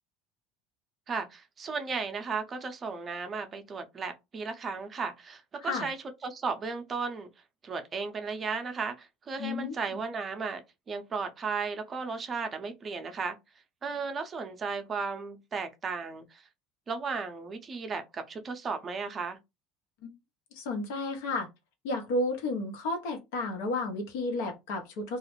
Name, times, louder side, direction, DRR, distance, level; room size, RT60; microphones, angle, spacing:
voice 1, 1.1-6.0 6.2-7.3 7.6-10.6 10.9-13.4 13.8-16.4 16.9-19.4, right 4 dB, 30° right, 0.5 m, -35 dB
voice 2, 5.6-5.9 9.4-10.0 20.0-20.1 20.5-21.5 21.8-25.2, left 2 dB, 80° left, 0.9 m, -32 dB
2.3 x 2.0 x 3.0 m
supercardioid pair, 125°, 0 cm